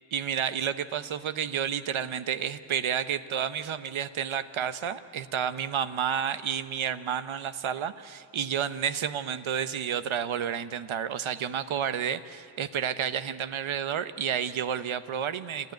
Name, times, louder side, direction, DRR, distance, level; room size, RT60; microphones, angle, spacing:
voice 1, 0.1-15.7, right 8 dB, 80° right, 12 dB, 1.0 m, -30 dB
28.5 x 13.5 x 9.3 m, 2.8 s
cardioid pair, 55°, 48 cm